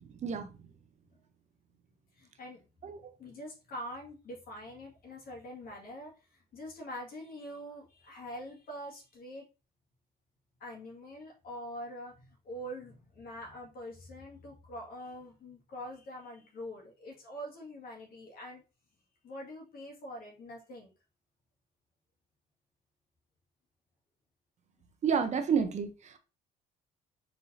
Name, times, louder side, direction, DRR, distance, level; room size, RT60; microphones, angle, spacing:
voice 1, 2.1-2.6 3.2-9.4 10.6-18.6 19.2-20.9, equal, 60° left, 2.0 m, -44 dB
voice 2, 25.0-26.2, right 6 dB, 45° right, 0.7 m, -29 dB
4.7 x 3.9 x 2.7 m
cardioid pair, 110°, 17 cm